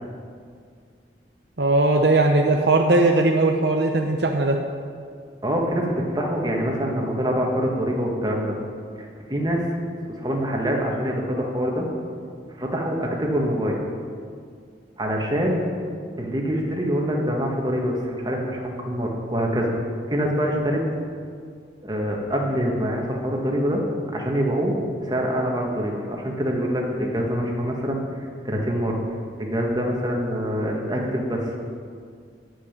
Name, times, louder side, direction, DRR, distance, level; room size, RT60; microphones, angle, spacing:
voice 1, 1.6-4.6, right 2 dB, 65° right, 3 dB, 0.8 m, -19 dB
voice 2, 5.4-8.6 9.0-9.7 10.0-11.8 12.5-13.8 15.0-15.6 16.2-19.7 20.1-20.8 21.8-23.8 24.1-28.0 28.4-29.0 29.4-31.5, equal, 20° right, -1 dB, 1.7 m, -25 dB
8.6 x 8.2 x 9.1 m, 2.2 s
head